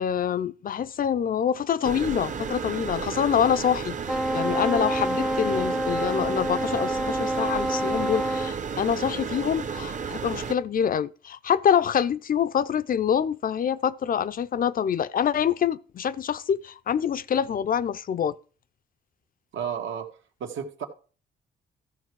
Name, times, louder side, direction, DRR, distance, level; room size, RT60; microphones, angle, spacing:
voice 1, 0.0-18.3, left 8 dB, 45° left, 0.5 m, -26 dB
sound 1, 1.8-10.6, right 6 dB, 40° right, 0.9 m, -33 dB
Wind instrument woodwind instrument, 4.1-8.6, equal, ahead, 0.6 m, -27 dB
voice 2, 19.5-20.1 20.4-20.9, right 8 dB, 75° right, 1.7 m, -32 dB
13.5 x 5.8 x 4.7 m
cardioid pair, 90°, 20 cm